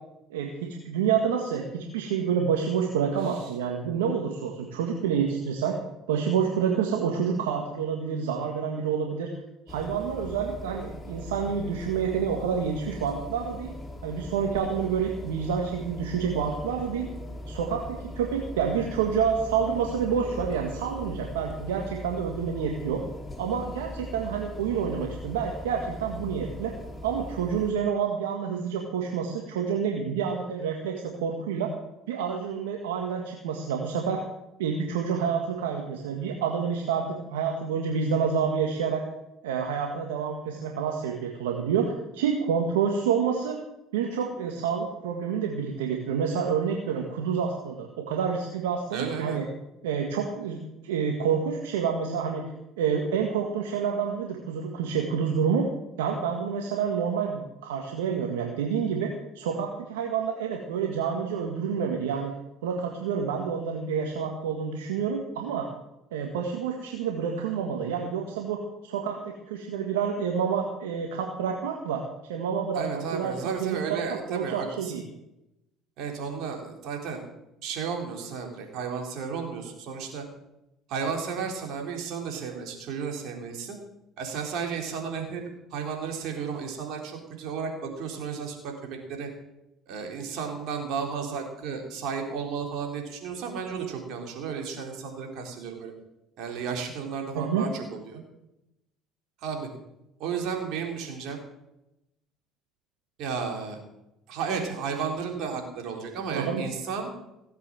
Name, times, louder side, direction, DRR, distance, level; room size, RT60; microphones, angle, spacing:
voice 1, 0.3-5.8 6.1-9.3 9.7-13.7 14.0-17.1 17.5-17.8 18.2-23.0 23.4-26.7 27.0-31.7 32.1-34.2 34.6-39.0 39.4-43.6 43.9-49.4 49.8-52.5 52.8-55.6 56.0-62.3 62.6-65.7 66.1-68.6 68.8-72.0 72.3-73.3 73.6-75.0 97.3-97.7 106.3-106.6, right 7 dB, 85° right, 2 dB, 1.8 m, -28 dB
sound 1, 9.7-27.7, left 1 dB, 15° left, 3.3 m, -40 dB
voice 2, 48.9-49.4 72.8-75.0 76.0-77.2 77.6-80.2 80.9-83.8 84.2-85.4 85.7-89.3 89.9-95.9 96.4-98.2 99.4-99.7 100.2-101.4 103.2-103.8 104.3-107.1, right 6 dB, 65° right, 2 dB, 4.0 m, -33 dB
17.5 x 8.1 x 7.7 m, 0.90 s
hypercardioid pair, 65°, 0 cm